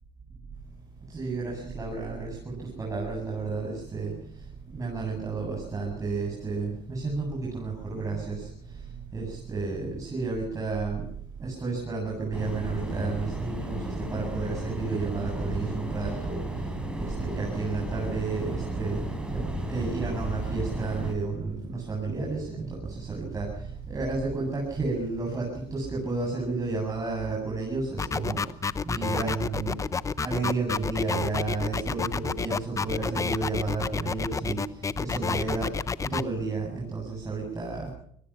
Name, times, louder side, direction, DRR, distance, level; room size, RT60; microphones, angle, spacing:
voice 1, 1.1-4.1 4.7-8.5 9.1-11.0 11.4-19.0 19.3-28.4 28.9-29.8 30.2-35.7 36.1-37.9, right 3 dB, 25° right, -2 dB, 7.9 m, -31 dB
sound 1, 12.3-21.1, right 1 dB, 5° right, 5.9 m, -34 dB
sound 2, 28.0-36.2, left 5 dB, 20° left, 0.8 m, -29 dB
24.0 x 18.5 x 5.9 m, 0.67 s
supercardioid pair, 100°, 15 cm